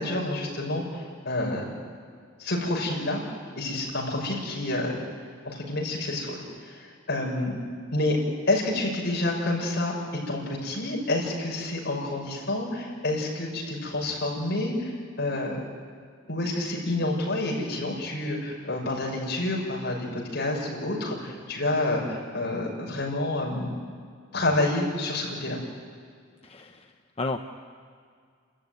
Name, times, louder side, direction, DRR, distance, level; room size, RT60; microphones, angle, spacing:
voice 1, 0.0-1.7 2.4-3.2 3.5-5.0 5.4-7.6 7.9-8.2 8.5-10.0 10.3-15.6 16.3-23.7 24.3-25.6, left 2 dB, 60° left, -2 dB, 6.2 m, -28 dB
voice 2, 26.4-26.9 27.2-27.4, left 3 dB, 30° left, 5 dB, 0.7 m, -32 dB
29.0 x 14.0 x 9.6 m, 2.1 s
head